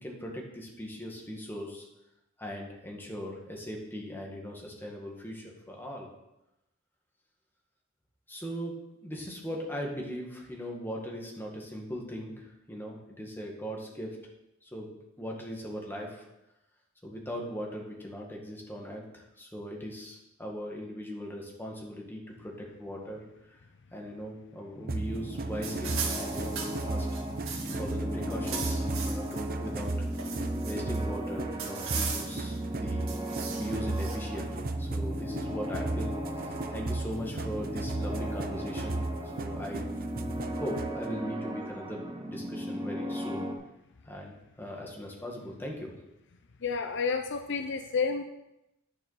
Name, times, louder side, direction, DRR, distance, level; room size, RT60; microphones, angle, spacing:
voice 1, 0.0-1.8 2.4-6.1 8.3-8.7 9.0-14.2 14.6-16.2 17.0-23.2 23.9-27.1 27.8-29.9 30.6-33.1 33.6-36.1 36.7-39.0 39.4-39.9 40.6-43.5 44.1-45.9, equal, 10° left, -1 dB, 1.9 m, -39 dB
sound 1, 24.7-43.5, equal, 20° right, 1.1 m, -37 dB
sound 2, 24.9-41.1, right 2 dB, 45° right, 0.7 m, -35 dB
sound 3, 25.6-27.9 28.2-29.4 29.8-31.0 31.6-32.6 33.1-34.2, right 6 dB, 85° right, 2.0 m, -37 dB
voice 2, 46.6-48.2, left 5 dB, 60° left, 7 dB, 0.6 m, -30 dB
10.0 x 6.8 x 5.7 m, 0.89 s
head